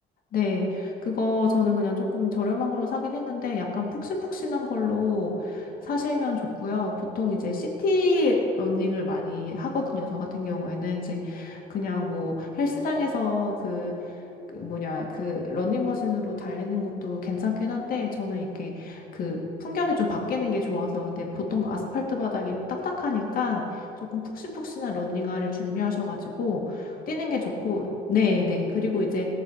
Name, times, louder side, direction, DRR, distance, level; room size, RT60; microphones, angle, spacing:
voice 1, 0.3-13.9 14.5-22.6 22.8-29.3, left 3 dB, 55° left, 0 dB, 2.5 m, -27 dB
18.5 x 6.7 x 6.6 m, 2.9 s
cardioid pair, 110°, 17 cm